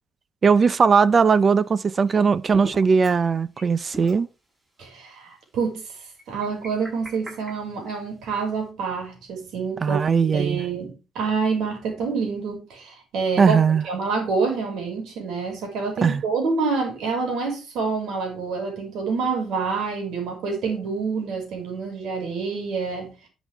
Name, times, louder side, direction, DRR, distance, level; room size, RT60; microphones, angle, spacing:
voice 1, 0.4-4.3 9.8-10.6 13.4-13.8 16.0-16.2, right 5 dB, 35° right, 0.6 m, -19 dB
sound 1, 1.4-3.2 3.5-3.7 3.9-4.2 4.8-4.9 6.2-8.3, right 1 dB, 15° right, 6.3 m, -41 dB
voice 2, 4.8-5.9 6.3-10.0 10.3-13.6 13.8-23.2, right 5 dB, 75° right, 5.6 m, -27 dB
11.0 x 7.4 x 3.5 m
cardioid pair, 125°, 0 cm